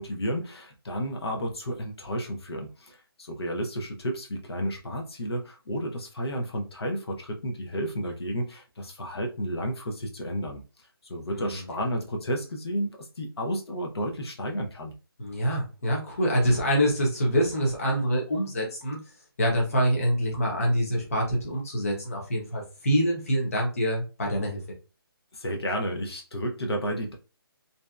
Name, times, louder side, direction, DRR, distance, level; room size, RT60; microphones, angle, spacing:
voice 1, 0.0-14.9 25.3-27.1, equal, 85° left, 2 dB, 0.7 m, -32 dB
voice 2, 15.2-19.0 19.4-24.6, equal, 35° left, -1 dB, 0.7 m, -25 dB
2.6 x 2.1 x 2.3 m, 0.32 s
hypercardioid pair, 175°, 13 cm